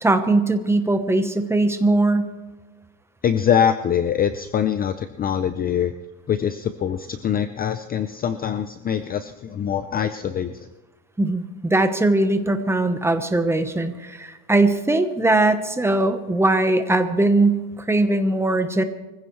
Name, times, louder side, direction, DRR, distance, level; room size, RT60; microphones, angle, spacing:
voice 1, 0.0-2.3 11.2-18.8, right 2 dB, 5° right, 8 dB, 1.0 m, -20 dB
voice 2, 3.2-5.9 6.3-10.7, left 8 dB, 25° left, 11 dB, 0.5 m, -23 dB
24.0 x 15.5 x 3.2 m, 1.2 s
cardioid pair, 145°, 38 cm